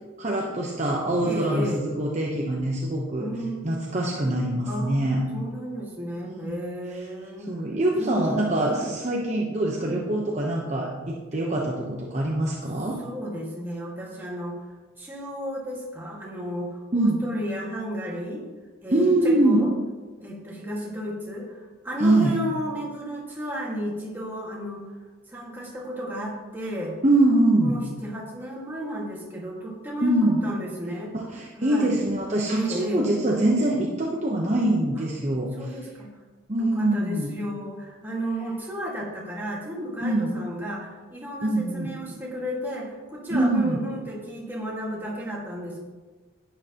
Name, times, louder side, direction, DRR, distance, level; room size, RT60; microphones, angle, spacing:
voice 1, 0.2-3.3 3.6-5.2 6.2-6.5 7.4-13.0 16.9-17.2 18.9-19.7 22.0-22.4 27.0-27.8 30.0-30.4 31.1-35.8 36.5-37.3 40.0-40.4 41.4-41.9 43.3-43.8, right 1 dB, 35° right, -2 dB, 0.9 m, -24 dB
voice 2, 1.2-1.8 3.2-3.9 4.7-5.0 5.3-7.5 8.0-8.9 9.8-10.1 13.0-14.7 15.0-18.4 18.8-19.7 20.2-24.9 25.3-27.0 27.6-31.1 31.6-31.9 32.5-33.1 35.0-35.1 35.6-36.1 36.6-45.8, equal, 10° right, -4 dB, 1.8 m, -33 dB
11.5 x 9.0 x 2.9 m, 1.3 s
head